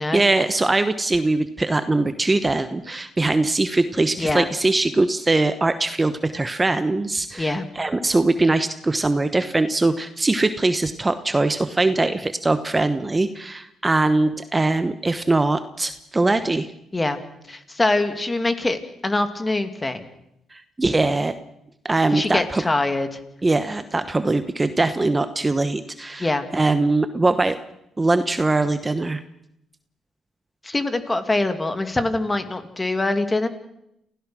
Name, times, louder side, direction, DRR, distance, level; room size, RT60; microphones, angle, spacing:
voice 1, 0.1-16.7 20.5-21.3 21.8-22.6 23.4-27.6 28.0-29.2, right 2 dB, 20° right, 10 dB, 1.0 m, -21 dB
voice 2, 17.5-20.0 22.1-23.2 26.2-26.5 30.6-33.5, left 2 dB, 20° left, 8 dB, 2.3 m, -23 dB
29.0 x 16.0 x 6.2 m, 0.81 s
cardioid pair, 90°, 0 cm